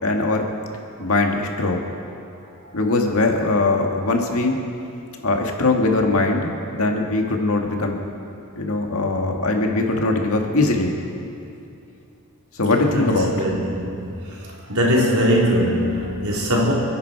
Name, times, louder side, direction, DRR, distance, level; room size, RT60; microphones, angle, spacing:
voice 1, 0.0-0.5 1.0-1.8 2.7-4.6 5.2-8.0 8.6-10.9 12.6-13.3, left 2 dB, 70° left, 2 dB, 1.9 m, -21 dB
voice 2, 12.9-14.1 14.7-16.7, equal, 80° right, -4 dB, 3.7 m, -21 dB
29.0 x 10.5 x 4.6 m, 2.7 s
head